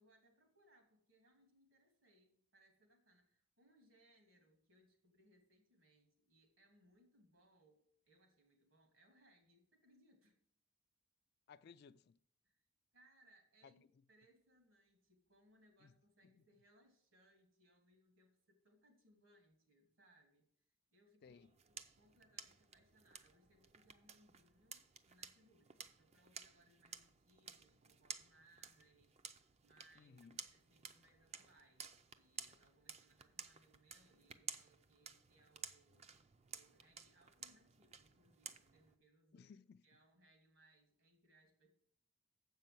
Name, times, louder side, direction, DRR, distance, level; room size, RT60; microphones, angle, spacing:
voice 1, 0.0-10.4 12.4-12.7 12.9-20.5 20.9-39.5 39.8-41.7, right 1 dB, 70° right, 2.5 m, -72 dB
voice 2, 11.5-12.2 13.6-13.7 15.8-15.9 16.2-16.3 21.2-21.5 30.0-30.4 39.3-39.8, left 6 dB, 50° left, 0.3 m, -60 dB
sound 1, 21.2-38.9, right 6 dB, 30° right, 0.4 m, -55 dB
7.5 x 5.5 x 7.6 m
head